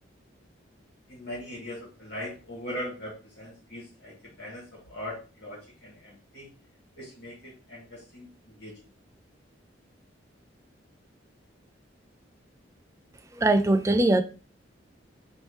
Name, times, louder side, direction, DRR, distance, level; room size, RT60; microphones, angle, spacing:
voice 1, 1.1-6.5 7.0-8.7, left 1 dB, 60° left, 2.0 m, -40 dB
voice 2, 13.3-14.2, right 2 dB, 15° right, 0.3 m, -21 dB
4.1 x 3.1 x 3.2 m
head